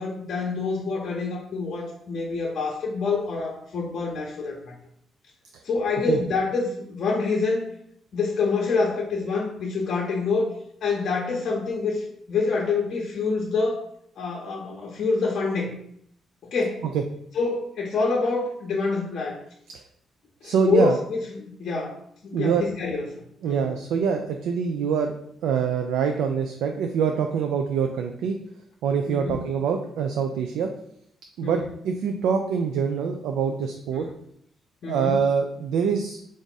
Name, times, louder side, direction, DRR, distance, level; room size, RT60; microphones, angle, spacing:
voice 1, 0.0-4.8 5.6-7.7 8.1-10.6 10.8-13.8 14.2-15.7 16.4-16.8 17.3-19.4 20.4-22.0 22.2-23.1 23.4-23.7 29.1-29.5 31.4-31.7 33.9-34.1 34.8-35.2, left 4 dB, 60° left, -3 dB, 0.6 m, -26 dB
voice 2, 20.4-21.0 22.3-22.6 23.4-25.1 25.4-28.4 28.8-30.7 31.4-31.6 31.8-34.1 34.9-36.2, right 6 dB, 85° right, 4 dB, 0.3 m, -24 dB
3.4 x 2.5 x 4.0 m, 0.69 s
cardioid pair, 90°, 0 cm